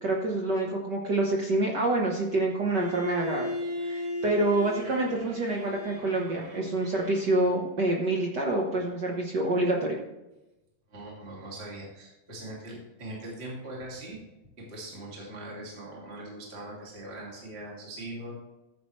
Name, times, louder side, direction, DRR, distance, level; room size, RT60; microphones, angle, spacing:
voice 1, 0.0-3.5 3.8-10.0, right 2 dB, 85° right, -1 dB, 0.9 m, -27 dB
Bowed string instrument, 2.7-7.7, left 1 dB, 65° right, 3.0 m, -37 dB
voice 2, 10.9-14.2 14.6-18.3, right 1 dB, 20° right, -4 dB, 2.4 m, -41 dB
14.5 x 8.0 x 3.2 m, 0.97 s
omnidirectional pair, 3.7 m